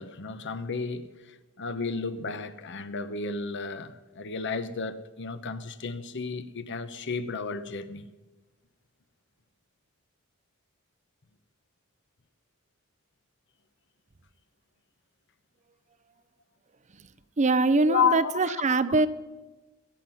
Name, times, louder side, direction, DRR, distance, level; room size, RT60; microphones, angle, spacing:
voice 1, 0.0-8.1 17.8-18.5 18.9-19.0, left 5 dB, 55° left, 0.9 m, -32 dB
voice 2, 17.4-19.1, right 3 dB, 35° right, 0.6 m, -23 dB
22.5 x 9.1 x 5.6 m
head